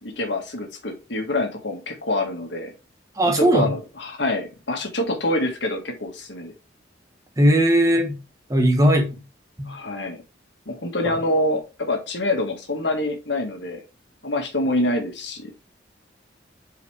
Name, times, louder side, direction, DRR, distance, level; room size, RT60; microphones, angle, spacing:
voice 1, 0.0-2.7 3.3-6.5 9.7-10.2 10.7-13.8 14.2-15.5, left 1 dB, 75° left, 1.8 m, -26 dB
voice 2, 3.2-3.7 7.4-8.2 8.5-9.2 9.6-9.7, equal, 20° right, 1.3 m, -18 dB
8.0 x 4.8 x 3.4 m
head